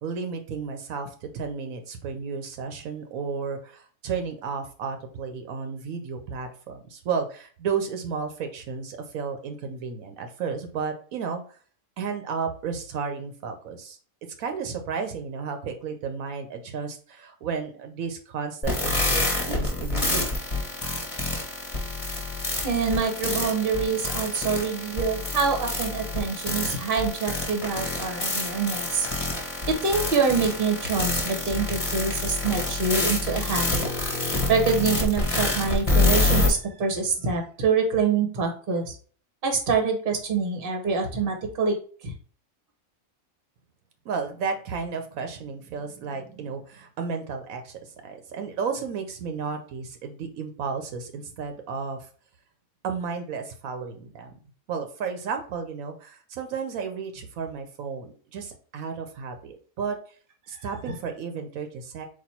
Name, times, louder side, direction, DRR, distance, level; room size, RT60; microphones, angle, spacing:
voice 1, 0.0-11.6 12.0-14.0 14.4-20.3 44.0-52.1 52.8-54.3 54.7-60.0 60.5-62.1, right 5 dB, 80° right, 6 dB, 1.1 m, -33 dB
sound 1, 18.6-36.5, left 2 dB, 25° left, 1.3 m, -27 dB
voice 2, 22.6-29.1 29.7-33.8 34.5-38.9 39.4-41.7 42.0-42.1 60.9-61.0, right 5 dB, 45° right, 3 dB, 1.1 m, -25 dB
4.2 x 2.6 x 4.2 m, 0.42 s
omnidirectional pair, 1.4 m